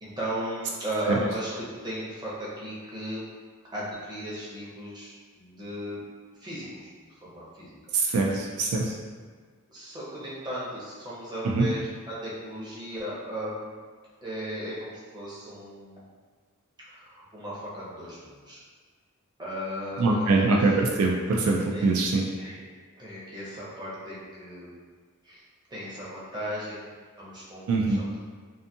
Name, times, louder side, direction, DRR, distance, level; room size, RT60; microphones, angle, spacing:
voice 1, 0.0-3.2 3.7-6.0 6.4-6.9 7.2-8.2 9.7-13.8 14.2-16.0 16.8-18.6 19.4-20.5 21.7-22.0 22.3-22.6 22.9-24.8 25.2-25.4 25.7-26.9 27.2-28.2, equal, 20° right, -8 dB, 0.6 m, -36 dB
voice 2, 7.9-9.0 11.4-11.6 20.0-22.2 27.7-28.0, right 3 dB, 70° right, -1 dB, 0.3 m, -23 dB
2.5 x 2.4 x 2.6 m, 1.5 s
head